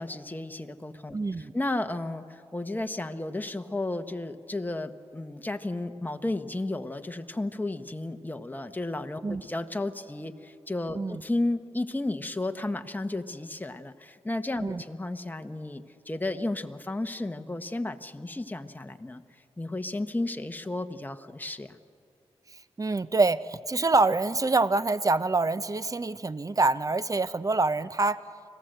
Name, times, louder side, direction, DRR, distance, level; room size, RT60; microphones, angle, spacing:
voice 1, 0.0-19.2 19.6-21.8, left 2 dB, 15° left, 8 dB, 1.2 m, -33 dB
voice 2, 1.1-1.5 9.2-9.4 11.0-11.2 14.6-14.8 22.8-28.2, right 3 dB, 30° right, 15 dB, 0.7 m, -26 dB
25.5 x 17.0 x 7.9 m, 2.5 s
cardioid pair, 55°, 11 cm